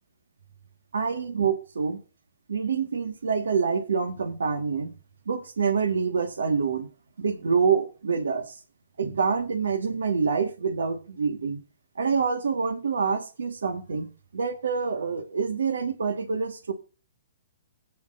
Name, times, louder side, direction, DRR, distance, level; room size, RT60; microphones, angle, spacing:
voice 1, 0.9-2.0 2.5-4.9 5.2-6.9 7.2-8.5 9.0-11.6 11.9-16.7, right 5 dB, 80° right, 1.6 m, -26 dB
20.0 x 8.6 x 2.6 m
hypercardioid pair, 130°, 0 cm